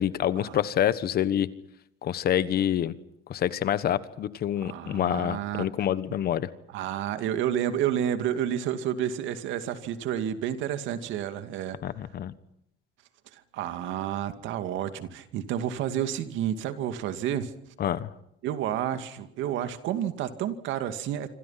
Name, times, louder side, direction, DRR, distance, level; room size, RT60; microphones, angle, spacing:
voice 1, 0.0-1.5 2.0-2.9 3.3-6.5 11.8-12.3 17.8-18.1, left 10 dB, 50° left, 15 dB, 1.3 m, -27 dB
voice 2, 4.6-5.7 6.7-11.8 13.3-17.5 18.4-21.3, right 10 dB, 70° right, 9 dB, 2.4 m, -30 dB
27.0 x 26.5 x 5.8 m, 0.77 s
cardioid pair, 135°, 20 cm